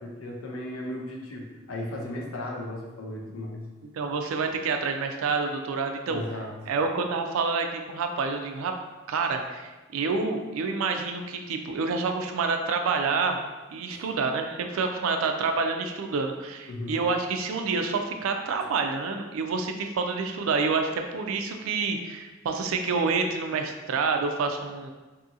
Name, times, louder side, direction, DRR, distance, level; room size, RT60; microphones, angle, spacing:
voice 1, 0.0-3.7 6.1-6.5 13.9-14.1 16.7-17.0, left 1 dB, 85° left, 0 dB, 0.6 m, -36 dB
voice 2, 3.9-6.4 6.7-8.7 9.1-13.4 13.7-24.9, right 4 dB, 80° right, 5 dB, 0.3 m, -28 dB
2.7 x 2.6 x 2.5 m, 1.2 s
head